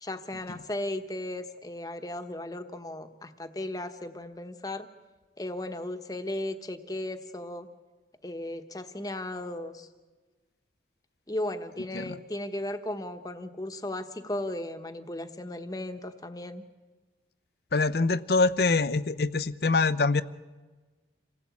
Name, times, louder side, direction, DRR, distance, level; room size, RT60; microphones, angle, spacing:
voice 1, 0.0-4.9 5.4-7.7 8.2-9.9 11.3-16.6, left 1 dB, 20° left, 8 dB, 1.2 m, -36 dB
voice 2, 17.7-20.2, left 3 dB, 60° left, 16 dB, 0.6 m, -24 dB
27.5 x 17.5 x 8.5 m, 1.3 s
head